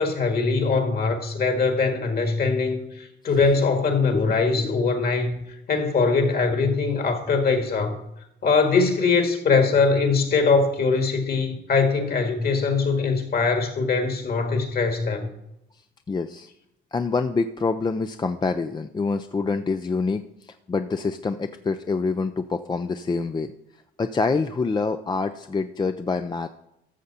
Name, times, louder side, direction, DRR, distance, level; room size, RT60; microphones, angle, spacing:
voice 1, 0.0-5.4 5.7-8.0 8.4-15.3, left 4 dB, 50° left, 1.9 m, -22 dB
voice 2, 4.1-4.8 16.1-16.5 16.9-23.5 24.0-26.5, left 4 dB, 20° left, 0.4 m, -26 dB
13.5 x 6.5 x 4.2 m
cardioid pair, 90°, 20 cm